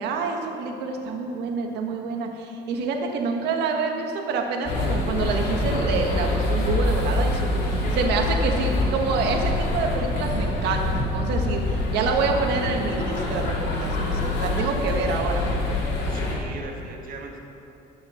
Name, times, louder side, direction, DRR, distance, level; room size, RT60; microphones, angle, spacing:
voice 1, 0.0-15.4, right 4 dB, 85° right, 2 dB, 1.5 m, -27 dB
sound 1, 4.6-16.4, left 2 dB, 85° left, 2.6 m, -25 dB
voice 2, 16.1-17.4, right 3 dB, 55° right, 1 dB, 1.8 m, -39 dB
12.0 x 6.5 x 7.1 m, 2.8 s
cardioid pair, 110°, 17 cm